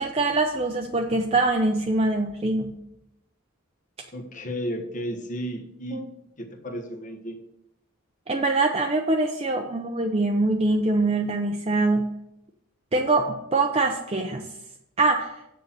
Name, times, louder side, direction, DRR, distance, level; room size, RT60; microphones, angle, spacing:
voice 1, 0.0-2.8 5.9-6.0 8.3-12.1 12.9-14.4 15.0-15.3, right 2 dB, 30° right, 2 dB, 0.6 m, -23 dB
voice 2, 4.1-6.0 6.4-7.4, equal, 40° left, 4 dB, 1.4 m, -33 dB
7.5 x 6.6 x 7.2 m, 0.83 s
head